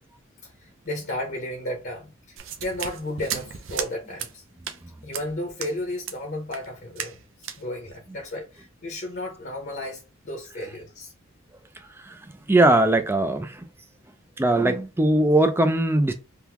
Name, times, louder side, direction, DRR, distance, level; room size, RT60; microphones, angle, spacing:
voice 1, 0.4-4.4 5.0-11.1, left 1 dB, 50° left, 0.9 m, -34 dB
sound 1, 2.4-3.9 4.2-4.3 4.6-4.8 5.1-5.3 5.6-5.7 6.0-6.2 6.5-6.7 7.0-7.2 7.4-7.6, right 8 dB, 70° right, 0.6 m, -34 dB
voice 2, 12.5-13.6 14.4-16.1, right 1 dB, 10° right, 0.4 m, -20 dB
3.6 x 2.2 x 2.9 m
head